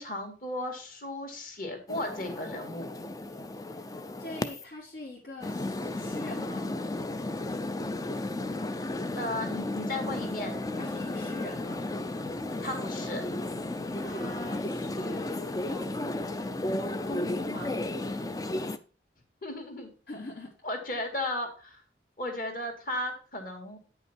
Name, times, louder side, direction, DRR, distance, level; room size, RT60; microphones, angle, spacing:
voice 1, 0.0-2.9 9.1-10.6 12.6-13.2 19.4-19.9 20.6-21.8 22.2-23.8, left 1 dB, 50° left, 4 dB, 2.3 m, -35 dB
sound 1, 1.9-4.6 5.4-18.8, left 2 dB, 20° left, 0.4 m, -34 dB
voice 2, 4.2-6.7 10.8-11.9 13.9-16.3 17.1-17.8 20.1-20.5, left 1 dB, 65° left, -2 dB, 1.7 m, -43 dB
9.2 x 5.6 x 4.6 m, 0.37 s
head